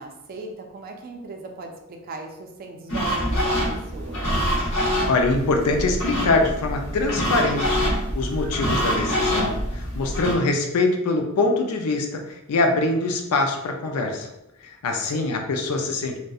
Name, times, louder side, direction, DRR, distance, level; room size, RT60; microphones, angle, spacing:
voice 1, 0.0-4.4 14.9-15.4, right 2 dB, 40° right, 3 dB, 0.3 m, -38 dB
sound 1, 2.9-10.4, equal, 65° left, 0.8 m, -25 dB
voice 2, 5.1-14.3 14.6-16.2, left 3 dB, 90° left, 4 dB, 0.4 m, -24 dB
2.6 x 2.1 x 2.3 m, 0.87 s
head